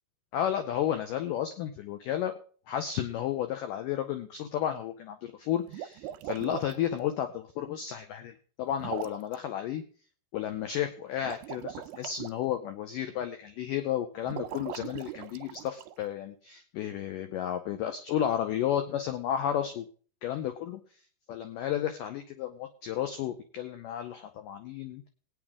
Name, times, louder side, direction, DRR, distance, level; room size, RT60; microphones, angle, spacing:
voice 1, 0.3-2.4 2.7-9.8 10.3-19.9 20.2-20.8 21.3-25.1, left 10 dB, 85° left, 8 dB, 1.9 m, -32 dB
sound 1, 5.6-6.8 8.8-9.3 11.2-12.3 14.2-15.9, right 12 dB, 80° right, 2.6 m, -40 dB
19.5 x 9.1 x 3.6 m, 0.43 s
omnidirectional pair, 4.8 m